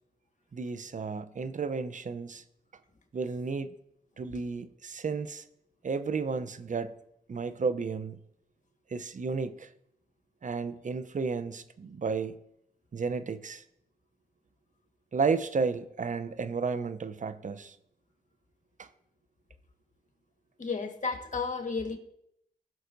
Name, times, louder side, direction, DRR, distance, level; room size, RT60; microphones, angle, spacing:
voice 1, 0.5-2.4 3.1-3.7 4.2-5.4 5.8-6.9 7.3-8.2 8.9-9.7 10.4-12.3 12.9-13.6 15.1-17.8 18.8-18.9, right 5 dB, 50° right, 12 dB, 0.7 m, -32 dB
voice 2, 20.6-22.0, left 4 dB, 50° left, 4 dB, 1.5 m, -32 dB
16.0 x 6.2 x 2.6 m, 0.76 s
cardioid pair, 45°, 16 cm